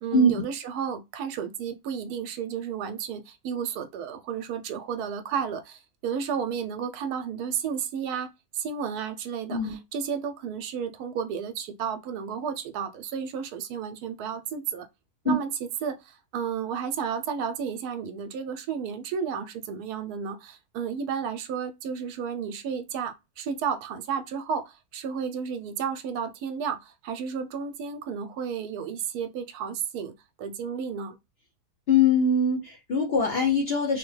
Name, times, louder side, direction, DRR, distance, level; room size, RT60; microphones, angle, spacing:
voice 1, 0.0-8.3 8.5-14.9 15.2-15.5 15.8-30.1 30.4-31.2, right 7 dB, 75° right, 1.1 m, -32 dB
voice 2, 31.9-34.0, left 3 dB, 55° left, 0.7 m, -22 dB
3.2 x 2.1 x 3.1 m
omnidirectional pair, 1.7 m